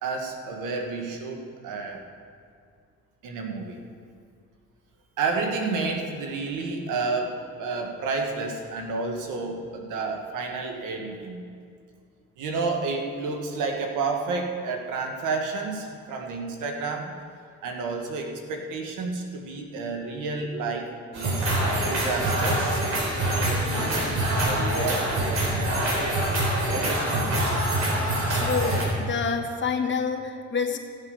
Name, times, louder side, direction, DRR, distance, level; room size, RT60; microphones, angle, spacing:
voice 1, 0.0-2.0 3.2-3.8 5.2-11.4 12.4-17.1 17.6-21.4 21.9-22.8 23.3-26.0 26.7-27.6, right 4 dB, 90° right, 3 dB, 1.5 m, -31 dB
sound 1, 21.1-28.8, right 1 dB, 60° right, 3.9 m, -25 dB
voice 2, 28.3-30.8, left 5 dB, 40° left, 3 dB, 1.4 m, -28 dB
15.5 x 8.2 x 5.3 m, 2.2 s
cardioid pair, 90°, 30 cm